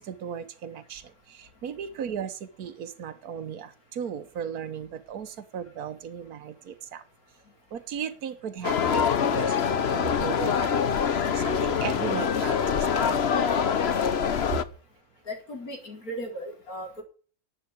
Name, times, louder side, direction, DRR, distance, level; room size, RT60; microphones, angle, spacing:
voice 1, 0.0-7.0 7.7-13.3 14.5-14.6, right 8 dB, 75° right, 9 dB, 1.5 m, -36 dB
sound 1, 8.6-14.6, left 7 dB, 50° left, 1.1 m, -25 dB
voice 2, 15.3-17.0, equal, 70° left, 2 dB, 4.9 m, -37 dB
11.5 x 8.6 x 8.3 m, 0.40 s
omnidirectional pair, 1.6 m